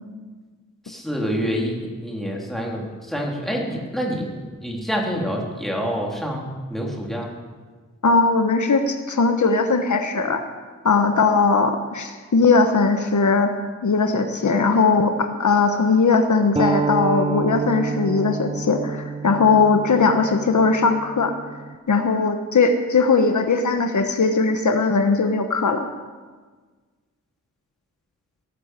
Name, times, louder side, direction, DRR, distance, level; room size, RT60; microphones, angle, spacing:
voice 1, 0.8-6.4 6.7-7.3, equal, ahead, -1 dB, 3.0 m, -27 dB
voice 2, 8.0-10.4 10.8-13.5 13.8-21.3 21.9-25.9, left 4 dB, 70° left, 6 dB, 1.2 m, -19 dB
sound 1, 16.6-21.8, right 4 dB, 20° right, 0.5 m, -28 dB
18.0 x 10.0 x 7.5 m, 1.4 s
wide cardioid pair, 120°, 31 cm